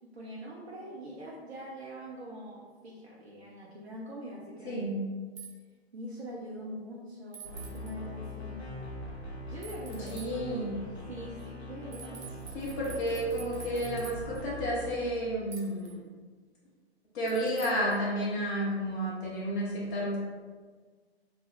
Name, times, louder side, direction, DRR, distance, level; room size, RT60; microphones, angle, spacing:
voice 1, 0.0-4.9 5.9-8.9 9.4-10.4 11.1-12.5, equal, 80° right, -5 dB, 0.7 m, -43 dB
voice 2, 4.6-5.0 9.9-10.8 12.5-16.0 17.1-20.2, equal, 50° left, -7 dB, 1.0 m, -31 dB
sound 1, 5.4-5.5 7.3-7.9 9.6-10.3 11.9-14.4 15.5-15.9 17.3-18.0, right 6 dB, 60° right, 1.0 m, -47 dB
sound 2, 7.4-14.9, left 2 dB, 80° left, 0.9 m, -42 dB
2.9 x 2.3 x 3.3 m, 1.5 s
figure-of-eight pair, 115°, 32 cm